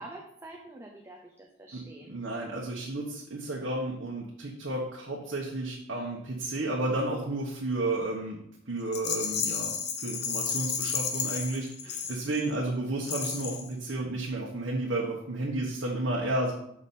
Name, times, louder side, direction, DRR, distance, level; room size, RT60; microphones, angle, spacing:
voice 1, 0.0-2.2 11.9-12.0, right 2 dB, 15° right, 0 dB, 0.6 m, -46 dB
voice 2, 2.1-8.4 8.7-9.7 10.0-16.5, right 2 dB, 75° right, -3 dB, 1.1 m, -32 dB
Rattle, 8.9-12.6 13.0-13.7, left 7 dB, 60° left, 0.8 m, -32 dB
6.9 x 5.0 x 4.2 m, 0.75 s
head